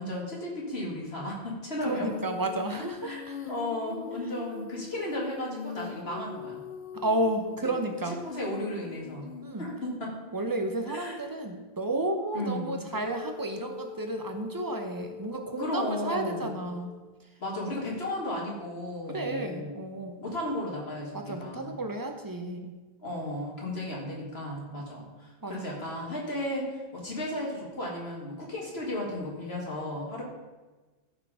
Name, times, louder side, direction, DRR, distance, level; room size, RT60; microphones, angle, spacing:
voice 1, 0.0-2.1 3.0-3.2 3.5-6.6 8.2-9.3 9.6-10.2 10.9-11.2 12.3-12.8 15.6-16.6 17.4-19.8 20.2-21.8 23.0-30.2, left 1 dB, 85° left, -2 dB, 2.5 m, -34 dB
Female singing, 1.8-10.7 12.9-17.1, left 6 dB, 55° left, 0.9 m, -43 dB
voice 2, 1.8-3.4 7.0-8.2 9.4-9.7 10.3-16.9 17.7-17.8 19.1-20.2 21.1-22.7 25.4-25.8, right 1 dB, 20° right, 4 dB, 0.9 m, -32 dB
13.5 x 4.8 x 4.9 m, 1.2 s
omnidirectional pair, 1.0 m